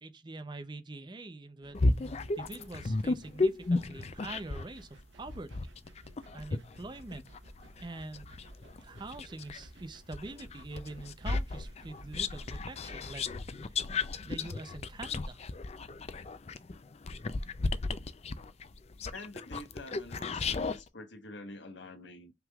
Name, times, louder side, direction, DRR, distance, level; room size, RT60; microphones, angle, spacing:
voice 1, 0.0-5.5 6.3-7.3 7.8-8.3 8.8-13.8 14.2-15.4, right 2 dB, 25° right, 0.6 m, -44 dB
sound 1, 1.6-13.3, right 1 dB, 75° right, 1.0 m, -54 dB
sound 2, 1.7-4.7 5.3-9.6 10.1-20.8, left 3 dB, 35° left, 0.4 m, -33 dB
voice 2, 19.1-22.3, left 2 dB, 70° left, 1.3 m, -46 dB
5.7 x 3.6 x 2.3 m
head